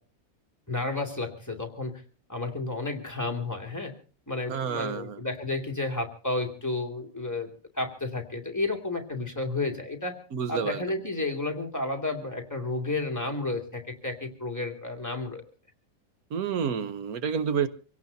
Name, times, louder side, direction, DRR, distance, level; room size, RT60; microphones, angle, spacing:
voice 1, 0.7-2.0 2.3-3.9 4.3-7.5 7.7-10.1 10.5-15.4, left 2 dB, 10° left, 2.3 m, -31 dB
voice 2, 4.5-5.2 10.3-10.8 16.3-17.7, right 7 dB, 80° right, 1.4 m, -29 dB
25.5 x 17.0 x 2.7 m
omnidirectional pair, 1.5 m